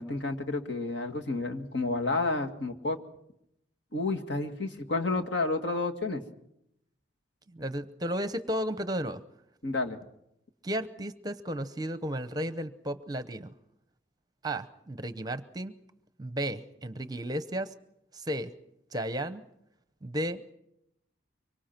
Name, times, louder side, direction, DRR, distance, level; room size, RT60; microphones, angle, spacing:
voice 1, 0.0-3.0 3.9-6.2 9.6-10.0, left 3 dB, 65° left, 4 dB, 2.1 m, -30 dB
voice 2, 7.5-9.2 10.6-13.5 14.4-15.7 16.2-17.7 18.1-18.5 18.9-19.4 20.0-20.5, equal, 20° right, 12 dB, 0.8 m, -33 dB
24.5 x 24.0 x 6.0 m, 0.78 s
head